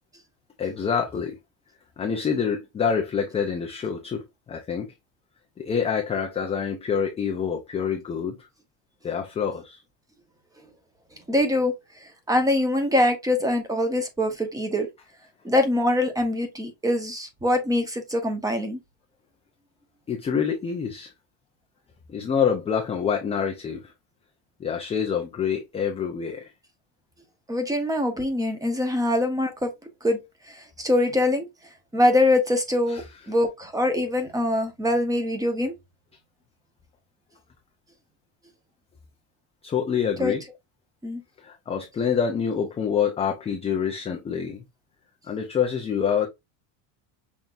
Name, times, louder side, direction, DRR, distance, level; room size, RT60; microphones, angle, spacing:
voice 1, 0.6-1.4 2.0-4.9 5.6-8.4 9.0-9.8 20.1-21.1 22.1-23.9 24.6-26.5 32.9-33.0 39.6-40.4 41.4-44.6 45.2-46.3, left 7 dB, 15° left, 0.4 m, -26 dB
voice 2, 11.3-11.7 12.0-14.9 15.4-18.8 27.5-29.7 30.0-30.2 30.5-31.5 31.9-35.7 40.2-40.3 41.0-41.2, left 1 dB, 10° right, 0.9 m, -23 dB
5.7 x 3.5 x 2.5 m
cardioid pair, 155°, 44 cm